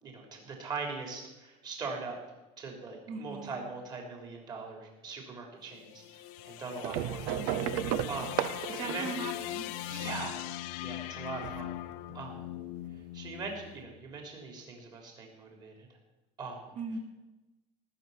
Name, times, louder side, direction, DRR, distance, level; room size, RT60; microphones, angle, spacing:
voice 1, 0.0-2.2 2.6-7.7 8.1-8.4 8.8-9.1 9.9-10.4 10.8-11.7 12.1-12.4 13.1-15.9 16.4-16.7, right 4 dB, 30° right, 1 dB, 3.5 m, -41 dB
voice 2, 3.1-3.5 7.3-7.6 8.7-10.3 16.8-17.0, right 4 dB, 55° right, 1 dB, 3.0 m, -40 dB
sound 1, 5.7-14.0, left 15 dB, 85° left, 0.6 m, -40 dB
sound 2, 6.8-10.1 11.3-12.1 13.3-13.4 13.6-13.7, right 12 dB, 90° right, 0.7 m, -34 dB
18.5 x 6.9 x 9.6 m, 1.0 s
cardioid pair, 175°, 14 cm